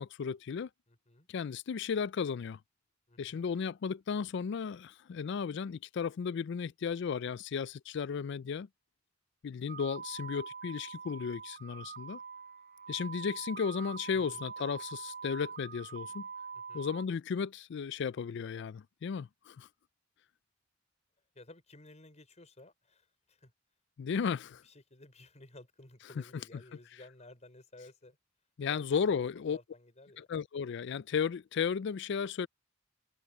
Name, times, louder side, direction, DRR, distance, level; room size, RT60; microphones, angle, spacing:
voice 1, 0.0-0.7 1.3-2.6 3.2-8.7 9.4-12.2 12.9-16.3 16.7-19.7 24.0-24.6 28.6-29.6 30.2-32.5, left 6 dB, 65° left, 0.4 m, -34 dB
voice 2, 0.9-1.3 3.1-3.5 14.1-14.5 16.5-16.9 21.3-23.5 24.4-28.2 28.6-29.2 29.5-30.2, left 2 dB, 35° left, 4.9 m, -55 dB
sound 1, 9.7-17.0, right 5 dB, 50° right, 7.7 m, -44 dB
head